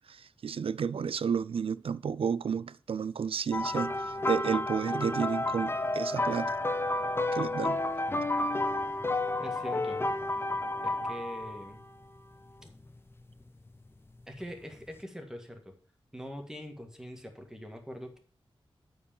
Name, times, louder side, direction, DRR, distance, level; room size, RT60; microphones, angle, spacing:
voice 1, 0.1-6.6 7.3-7.8, right 6 dB, 70° right, 0.4 m, -32 dB
sound 1, 3.5-11.8 12.7-12.9 14.7-14.8, left 2 dB, 25° left, 0.7 m, -31 dB
voice 2, 9.4-10.2 10.8-11.9 14.3-15.8 16.1-18.2, equal, 5° right, 1.7 m, -43 dB
8.5 x 4.7 x 7.1 m
wide cardioid pair, 110°, 10 cm